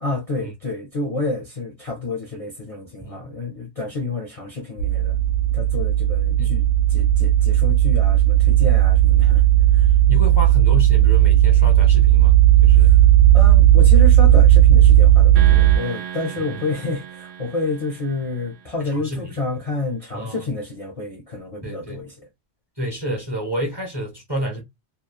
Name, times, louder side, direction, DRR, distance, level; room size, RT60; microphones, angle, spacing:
voice 1, 0.0-5.2 5.5-9.4 9.7-9.9 12.7-13.0 13.3-22.2, left 2 dB, 45° left, 0.5 m, -29 dB
voice 2, 3.0-3.3 6.4-6.5 10.1-12.3 12.6-12.9 18.8-19.4 20.1-20.3 21.6-22.0 22.8-24.6, equal, 25° right, 0.6 m, -29 dB
sound 1, 4.8-15.8, right 12 dB, 85° left, 1.0 m, -14 dB
sound 2, 15.4-18.8, right 9 dB, 80° right, 0.9 m, -36 dB
3.0 x 2.1 x 2.2 m
omnidirectional pair, 1.3 m